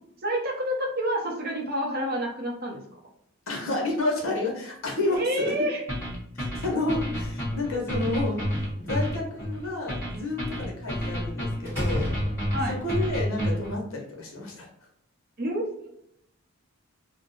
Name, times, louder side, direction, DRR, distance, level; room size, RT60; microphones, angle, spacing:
voice 1, 0.2-2.8 5.1-5.8 12.5-12.8 15.4-15.6, equal, 45° right, -1 dB, 0.7 m, -28 dB
voice 2, 3.5-5.5 6.4-8.4 8.8-12.0 12.7-14.7, left 2 dB, 65° left, -1 dB, 0.9 m, -30 dB
sound 1, 5.9-13.8, equal, 10° left, 1.1 m, -30 dB
Slam, 7.9-8.9 11.0-11.2 11.7-12.9, left 1 dB, 10° right, 1.0 m, -34 dB
2.6 x 2.1 x 3.9 m, 0.76 s
head